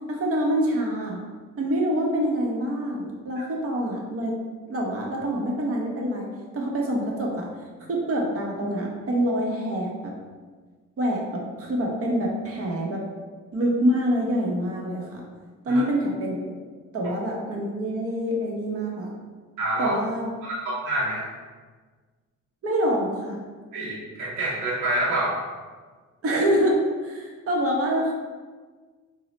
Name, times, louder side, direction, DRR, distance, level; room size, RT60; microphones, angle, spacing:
voice 1, 0.1-1.2 1.6-4.3 4.7-6.3 6.5-7.5 7.9-10.1 11.0-13.0 13.5-15.2 15.6-16.6 16.9-19.1 19.8-20.3 22.6-23.4 26.2-28.1, equal, 50° right, -1 dB, 0.8 m, -26 dB
voice 2, 19.6-20.0 20.4-21.3 23.7-25.4, right 1 dB, 90° right, -6 dB, 0.6 m, -27 dB
3.7 x 2.0 x 3.1 m, 1.4 s
cardioid pair, 90°, 30 cm